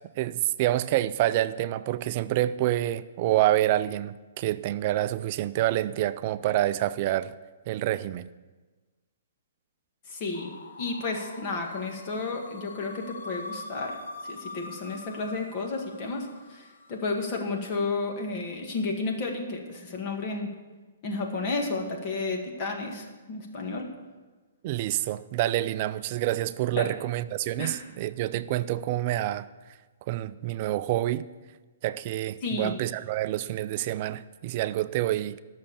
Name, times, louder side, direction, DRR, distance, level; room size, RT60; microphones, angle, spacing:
voice 1, 0.2-7.3 7.7-8.3 24.6-29.5 30.1-31.3 31.8-35.4, right 14 dB, 35° right, 0.4 m, -27 dB
voice 2, 10.1-10.5 10.8-14.0 14.2-20.5 21.0-23.9 26.7-26.9 27.6-27.8 32.4-32.7, left 3 dB, 30° left, 1.9 m, -32 dB
sound 1, 10.3-17.3, left 3 dB, 75° left, 1.0 m, -43 dB
12.5 x 6.5 x 7.3 m
hypercardioid pair, 160°, 0 cm